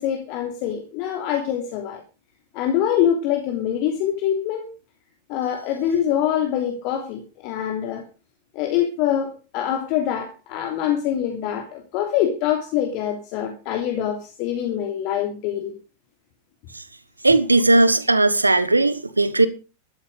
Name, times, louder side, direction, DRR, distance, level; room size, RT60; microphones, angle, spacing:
voice 1, 0.0-2.0 2.5-4.7 5.3-8.0 8.5-15.7, left 10 dB, 45° left, 2.9 m, -24 dB
voice 2, 17.2-19.5, right 2 dB, 80° right, 1.2 m, -17 dB
14.0 x 13.0 x 5.1 m
figure-of-eight pair, 90°, 0 cm